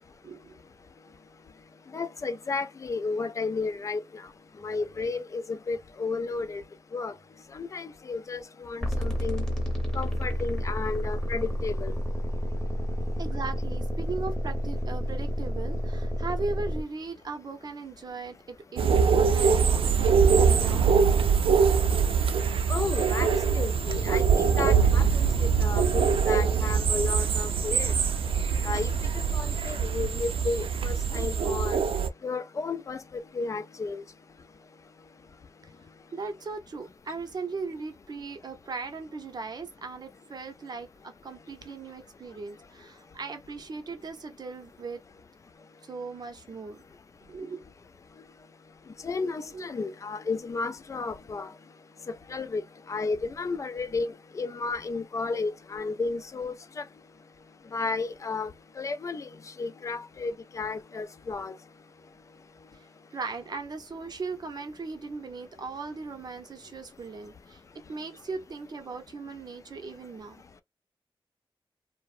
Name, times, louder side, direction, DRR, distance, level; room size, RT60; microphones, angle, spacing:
voice 1, 0.2-0.6 13.2-21.1 36.1-45.0 45.8-46.8 47.3-47.6 49.5-49.7 62.7-62.9 63.1-67.6 67.9-70.4, right 4 dB, 50° right, 0.7 m, -38 dB
voice 2, 1.9-4.0 4.6-6.6 6.9-7.1 7.5-9.4 9.9-11.9 22.7-23.3 23.5-27.9 28.7-28.9 29.3-31.8 32.2-33.0 33.4-34.0 49.0-51.5 52.3-52.6 52.9-56.5 57.7-58.5 58.8-59.2 59.6-61.5, left 4 dB, 35° left, 0.3 m, -32 dB
sound 1, 8.8-16.8, equal, 5° left, 0.8 m, -30 dB
sound 2, 18.8-32.1, right 6 dB, 85° right, 0.4 m, -23 dB
2.8 x 2.0 x 2.4 m
wide cardioid pair, 175°, 9 cm